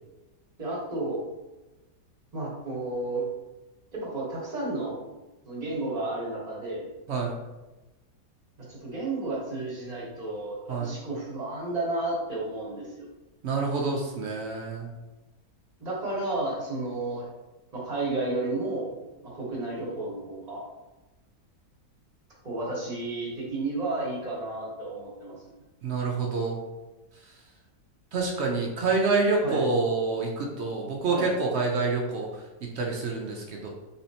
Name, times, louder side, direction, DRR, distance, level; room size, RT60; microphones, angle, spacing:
voice 1, 0.6-1.2 2.3-3.3 3.9-4.9 5.4-6.9 8.6-13.1 15.8-17.2 17.7-18.9 19.2-20.6 22.4-25.4 29.4-29.6 31.1-31.3, right 2 dB, 25° right, -6 dB, 1.3 m, -32 dB
voice 2, 7.1-7.4 10.7-11.0 13.4-14.9 25.8-26.6 27.2-27.3 28.1-33.7, right 3 dB, 70° right, -1 dB, 0.6 m, -27 dB
4.2 x 3.6 x 2.8 m, 1.1 s
omnidirectional pair, 1.8 m